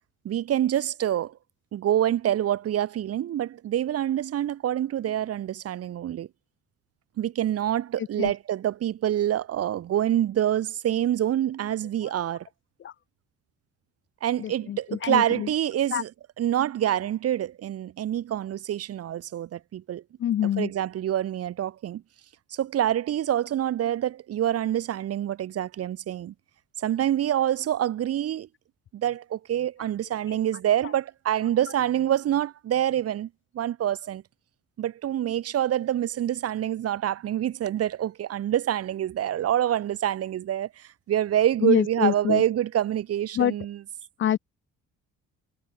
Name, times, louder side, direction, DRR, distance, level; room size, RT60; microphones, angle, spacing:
voice 1, 0.2-1.3 1.7-6.3 7.2-12.5 14.2-20.0 20.4-22.0 22.5-26.3 26.8-28.5 28.9-33.3 33.5-34.2 34.8-43.9, right 11 dB, 50° right, 0.7 m, -26 dB
voice 2, 14.4-15.5 15.9-16.0 20.2-20.7 41.6-42.4 43.4-43.5 44.2-44.4, left 10 dB, 40° left, 0.4 m, -25 dB
supercardioid pair, 65°, 31 cm